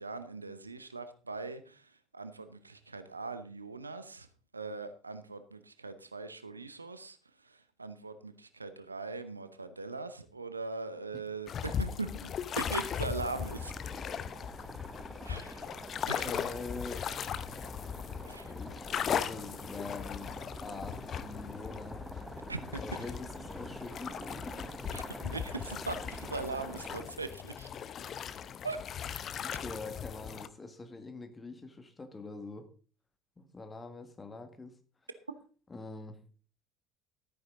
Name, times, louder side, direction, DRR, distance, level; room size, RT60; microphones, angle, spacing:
voice 1, 0.0-4.3 4.5-7.2 7.4-13.7 15.2-15.8 16.1-16.5 18.2-18.5 22.5-22.8 24.9-27.7 28.6-28.8, right 3 dB, 85° right, 0.8 m, -40 dB
sound 1, 11.5-30.5, left 8 dB, 40° left, 0.7 m, -38 dB
sound 2, 13.2-27.1, right 2 dB, 10° right, 1.0 m, -47 dB
voice 2, 16.2-17.1 18.5-22.1 22.8-24.7 26.7-26.8 29.6-32.7 33.4-34.8 35.7-36.2, left 3 dB, 20° left, 1.7 m, -44 dB
13.0 x 9.4 x 3.8 m
figure-of-eight pair, 60°, 0 cm